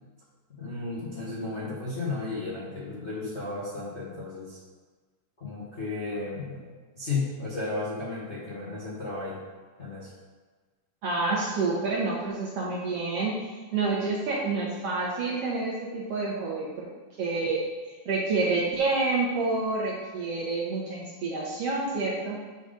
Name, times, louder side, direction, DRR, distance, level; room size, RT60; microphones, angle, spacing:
voice 1, 0.6-4.6 5.4-9.4 9.8-10.1, left 3 dB, 45° left, -8 dB, 0.8 m, -34 dB
voice 2, 11.0-16.9 17.2-22.4, right 3 dB, 65° right, -4 dB, 1.6 m, -28 dB
8.0 x 4.0 x 5.0 m, 1.4 s
omnidirectional pair, 3.7 m